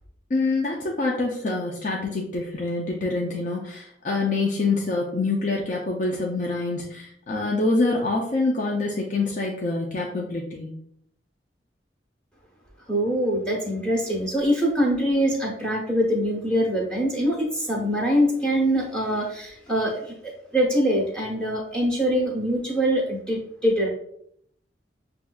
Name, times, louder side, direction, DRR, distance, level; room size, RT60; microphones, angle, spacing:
voice 1, 0.3-10.7, left 3 dB, 45° left, -1 dB, 0.5 m, -26 dB
voice 2, 12.9-23.9, equal, 5° left, -3 dB, 1.1 m, -24 dB
6.9 x 2.6 x 2.3 m, 0.70 s
head